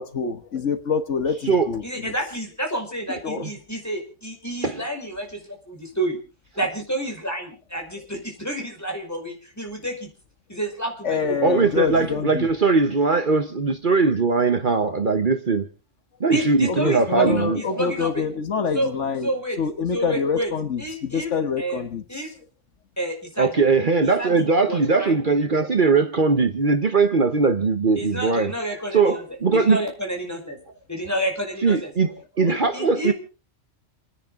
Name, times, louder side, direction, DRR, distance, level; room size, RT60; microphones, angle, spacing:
voice 1, 0.0-2.1 3.2-3.5 11.0-12.5 16.7-19.3 19.6-22.0, left 6 dB, 85° left, 1.7 m, -26 dB
voice 2, 1.8-6.2 6.6-10.1 10.5-11.7 16.3-18.2 18.7-18.9 19.2-19.6 19.9-20.5 20.8-21.3 21.6-21.8 22.1-22.3 23.0-23.5 24.2-25.2 28.0-29.2 29.5-30.6 30.9-31.9 32.4-33.1, right 1 dB, 15° left, 5.1 m, -29 dB
voice 3, 11.4-15.7 16.2-17.8 23.4-28.5 28.9-29.8 31.6-33.1, right 4 dB, 45° right, 1.2 m, -20 dB
29.5 x 10.0 x 3.7 m
omnidirectional pair, 1.2 m